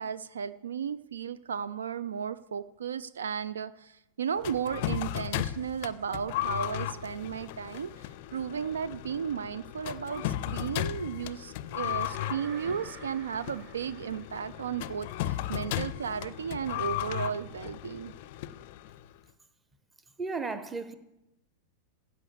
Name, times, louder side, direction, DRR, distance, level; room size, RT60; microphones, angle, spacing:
voice 1, 0.0-18.1, right 7 dB, 70° right, 0.3 m, -34 dB
sound 1, 4.4-19.1, left 13 dB, 50° left, 0.5 m, -36 dB
sound 2, 11.8-14.9, right 3 dB, 45° right, 3.2 m, -49 dB
voice 2, 20.2-20.9, right 4 dB, 15° right, 0.9 m, -34 dB
15.5 x 5.2 x 6.9 m
figure-of-eight pair, 90°, 0 cm